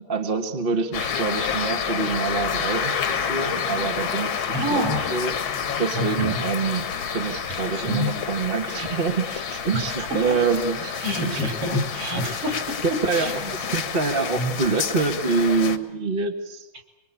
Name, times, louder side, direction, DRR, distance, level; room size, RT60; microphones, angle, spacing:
voice 1, 0.0-11.4 12.8-16.7, right 4 dB, 25° right, 4 dB, 1.5 m, -26 dB
sound 1, 0.9-15.8, left 7 dB, 50° left, 2.0 m, -29 dB
voice 2, 4.5-5.0 5.9-6.4 7.5-8.1 9.7-10.5 11.0-13.6 14.3-14.5, left 1 dB, 50° right, 7 dB, 5.0 m, -28 dB
25.0 x 24.0 x 8.5 m, 0.99 s
omnidirectional pair, 3.3 m